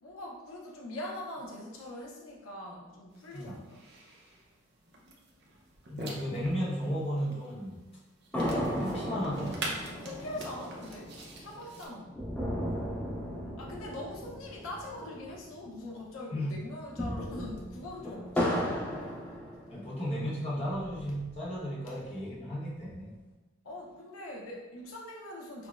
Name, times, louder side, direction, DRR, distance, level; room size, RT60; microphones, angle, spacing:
voice 1, 0.0-3.8 9.9-12.2 13.6-19.0 23.6-25.7, left 1 dB, 85° left, -2 dB, 0.6 m, -42 dB
sound 1, 3.1-11.9, right 2 dB, 55° right, 0.6 m, -45 dB
voice 2, 5.9-7.8 8.5-9.7 16.3-16.6 19.7-23.1, equal, 30° left, -7 dB, 0.8 m, -34 dB
sound 2, 8.3-15.9 16.2-16.3 16.7-20.1 20.6-21.6, equal, 5° left, 0.5 m, -36 dB
5.8 x 2.0 x 2.4 m, 1.1 s
head